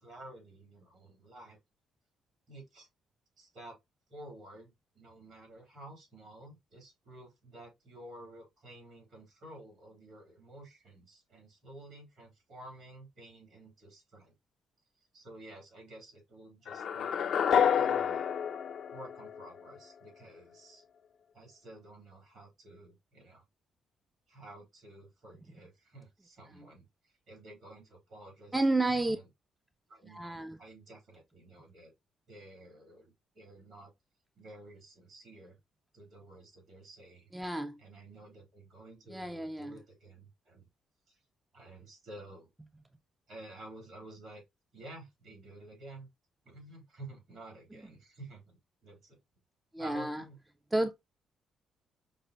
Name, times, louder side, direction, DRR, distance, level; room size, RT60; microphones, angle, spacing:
voice 1, 0.0-1.6 2.5-2.9 3.4-3.8 4.1-14.3 15.1-17.1 17.7-18.2 18.9-20.8 21.3-23.4 24.3-29.3 29.9-31.9 32.3-33.9 34.4-35.6 35.9-37.3 37.8-40.7 41.1-41.2 41.5-42.5 43.3-44.4 44.7-46.1 46.4-49.2 49.8-50.4, right 1 dB, 65° right, 2.9 m, -52 dB
sound 1, 16.7-19.8, left 8 dB, 65° left, 0.5 m, -29 dB
voice 2, 28.5-29.2 30.1-30.6 37.3-37.8 39.1-39.8 49.7-50.2 50.7-50.9, right 2 dB, 10° right, 0.4 m, -31 dB
5.3 x 2.2 x 2.9 m
cardioid pair, 90°, 0 cm